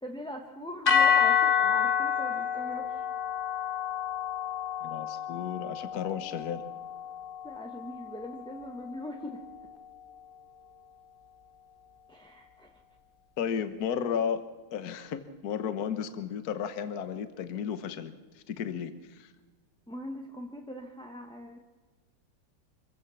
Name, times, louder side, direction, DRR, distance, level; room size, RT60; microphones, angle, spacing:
voice 1, 0.0-2.9 7.4-9.4 12.1-12.8 19.9-21.6, left 1 dB, 5° left, 1 dB, 1.2 m, -41 dB
sound 1, 0.9-9.1, left 7 dB, 30° left, 1.4 m, -29 dB
voice 2, 4.8-6.6 13.4-14.4 14.7-19.3, left 8 dB, 60° left, 11 dB, 1.5 m, -33 dB
25.5 x 15.5 x 7.2 m, 1.3 s
omnidirectional pair, 2.0 m